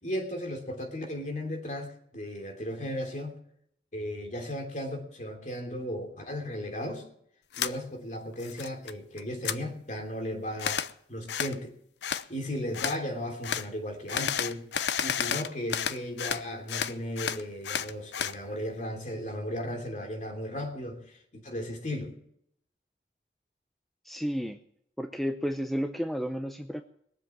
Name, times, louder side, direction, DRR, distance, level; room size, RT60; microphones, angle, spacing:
voice 1, 0.0-3.4 3.9-7.1 7.5-10.8 11.1-11.7 12.1-14.7 15.0-22.2, equal, 40° left, 3 dB, 3.1 m, -36 dB
sound 1, 7.5-7.7 8.2-8.9 9.2-9.6 10.6-10.9 11.3-11.6 12.0-12.2 12.7-13.0 13.4-13.7 14.1-16.4 16.7-18.4, left 8 dB, 70° left, 0.6 m, -31 dB
voice 2, 24.0-24.6 25.0-26.8, equal, ahead, 6 dB, 0.6 m, -32 dB
21.0 x 7.6 x 7.5 m, 0.70 s
head